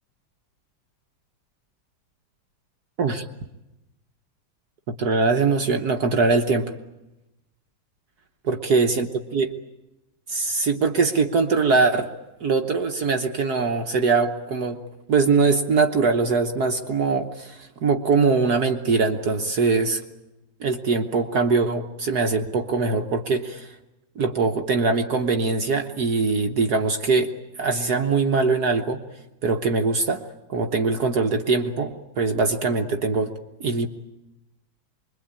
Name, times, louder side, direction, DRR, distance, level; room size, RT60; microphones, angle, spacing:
voice 1, 5.0-6.7 8.4-9.1 9.3-9.5 10.3-12.1 12.4-14.8 15.1-20.0 20.6-23.7 24.2-27.3 27.6-29.0 29.4-30.2 30.5-33.3 33.6-33.9, right 4 dB, 55° right, 5 dB, 1.5 m, -22 dB
25.5 x 22.5 x 8.8 m, 0.96 s
omnidirectional pair, 2.3 m